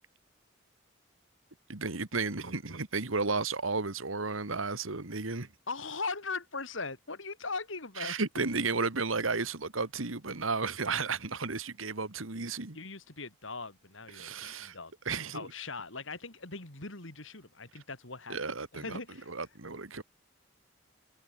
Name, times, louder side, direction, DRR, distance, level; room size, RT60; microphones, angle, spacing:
voice 1, 1.7-5.5 8.0-12.8 14.1-14.8 15.1-15.5 18.3-19.0 19.3-20.0, right 4 dB, 90° right, 2.0 m, -33 dB
voice 2, 5.7-8.2 12.7-14.9 15.3-18.4 18.7-19.3, left 4 dB, 75° left, 4.3 m, -40 dB
head